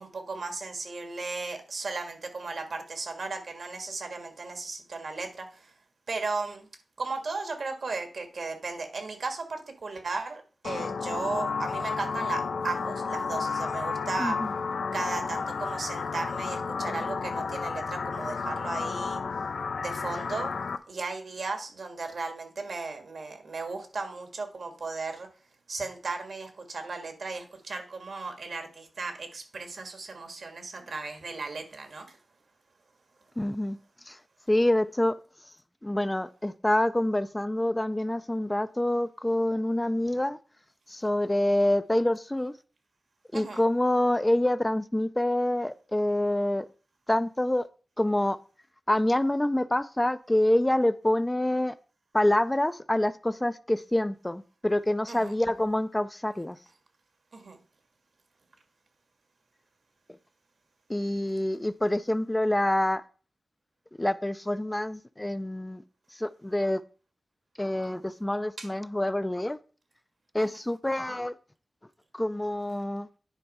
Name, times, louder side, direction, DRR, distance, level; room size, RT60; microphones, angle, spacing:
voice 1, 0.0-5.7 6.1-6.7 7.0-14.4 14.9-19.2 19.8-20.5 20.9-25.3 25.7-32.2 43.3-43.6 55.1-55.3 57.3-57.6 68.6-68.7 70.4-70.6, right 3 dB, 75° right, 1.7 m, -36 dB
sound 1, 10.6-20.8, left 5 dB, 85° left, 0.5 m, -32 dB
voice 2, 14.2-14.5 33.4-33.8 34.1-34.2 34.5-35.1 35.8-40.4 40.9-42.5 43.3-46.6 47.1-47.7 48.0-48.4 48.9-51.8 52.1-56.6 60.9-63.0 64.0-65.8 66.1-66.8 67.6-69.6 70.3-71.4 72.1-73.1, left 1 dB, 15° left, 0.3 m, -26 dB
10.0 x 4.5 x 5.4 m
wide cardioid pair, 125°, 0 cm